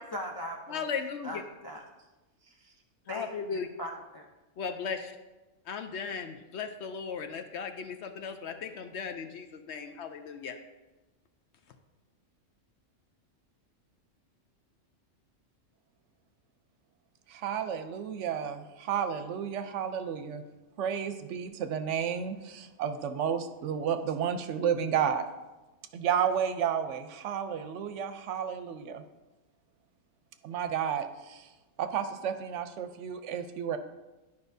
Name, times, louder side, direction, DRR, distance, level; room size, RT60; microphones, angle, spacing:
voice 1, 0.0-0.9 1.2-1.8 3.1-4.3, equal, 35° left, 0 dB, 0.3 m, -40 dB
voice 2, 0.7-1.4 3.1-3.7 4.6-5.1 5.7-10.6, left 6 dB, 65° left, 6 dB, 0.8 m, -36 dB
voice 3, 17.3-20.4 20.8-25.3 25.9-29.0 30.4-31.4 31.8-33.8, right 8 dB, 75° right, 9 dB, 0.9 m, -31 dB
11.0 x 5.3 x 2.6 m, 1.1 s
omnidirectional pair, 1.3 m